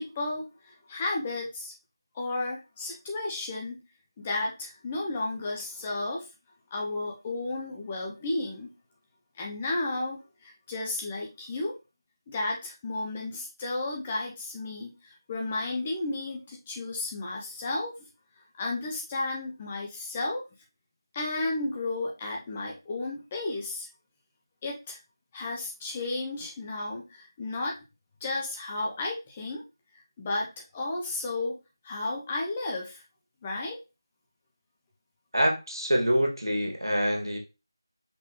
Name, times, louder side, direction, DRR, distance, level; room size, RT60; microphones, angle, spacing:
voice 1, 0.0-1.7 2.1-3.8 4.2-6.3 6.7-8.7 9.4-11.8 12.3-18.0 18.6-20.4 21.1-23.9 24.6-25.0 25.3-27.8 28.2-29.6 29.9-31.6 31.8-33.0 33.4-33.8, left 2 dB, 10° left, 0 dB, 0.4 m, -33 dB
voice 2, 35.3-37.4, equal, 70° right, 0 dB, 1.7 m, -25 dB
5.2 x 3.0 x 2.9 m, 0.28 s
figure-of-eight pair, 165°, 2 cm